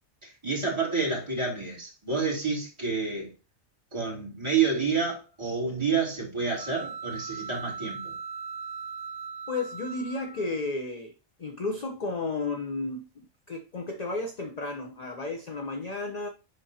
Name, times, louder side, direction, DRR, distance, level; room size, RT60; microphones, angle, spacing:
voice 1, 0.2-3.3 3.9-8.1, right 5 dB, 20° right, 3.2 m, -29 dB
sound 1, 6.5-10.6, right 5 dB, 90° right, 1.6 m, -39 dB
voice 2, 9.5-11.1 11.4-16.3, left 3 dB, 35° left, 0.7 m, -33 dB
10.5 x 3.8 x 2.8 m
omnidirectional pair, 1.4 m